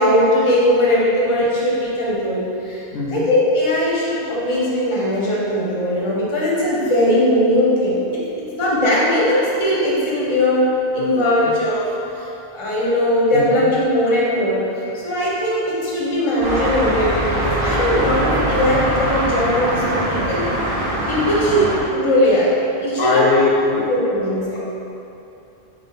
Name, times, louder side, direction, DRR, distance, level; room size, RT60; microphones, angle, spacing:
voice 1, 0.0-8.2 8.6-11.9 12.5-14.6 14.9-20.5 21.1-23.2 23.9-24.6, left 1 dB, 30° left, -6 dB, 0.8 m, -19 dB
voice 2, 2.9-3.3 11.0-11.5 13.3-13.7 21.5-21.7 23.0-23.9 24.6-24.7, left 3 dB, 70° left, -4 dB, 0.8 m, -21 dB
sound 1, 16.4-21.8, right 1 dB, 60° right, 1.0 m, -22 dB
3.7 x 3.0 x 4.1 m, 2.9 s
omnidirectional pair, 1.1 m